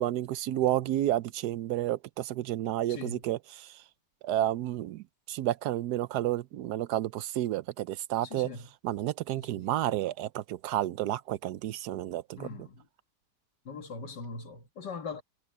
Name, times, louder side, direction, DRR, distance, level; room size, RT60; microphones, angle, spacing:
voice 1, 0.0-3.7 4.2-8.5 8.8-12.5, right 13 dB, 75° right, 1.1 m, -31 dB
voice 2, 2.9-3.2 8.2-8.7 9.4-9.7 12.4-12.9 13.7-15.2, left 4 dB, 90° left, 2.6 m, -41 dB
omnidirectional pair, 1.8 m